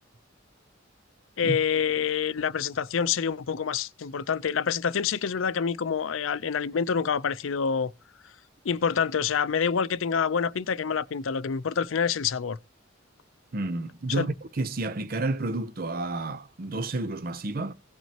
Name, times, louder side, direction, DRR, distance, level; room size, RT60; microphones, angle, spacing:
voice 1, 1.4-7.9 8.6-12.6 14.2-14.3, left 6 dB, 80° left, 0.5 m, -27 dB
voice 2, 13.5-17.7, right 2 dB, 45° right, 0.6 m, -30 dB
17.0 x 6.1 x 2.8 m
head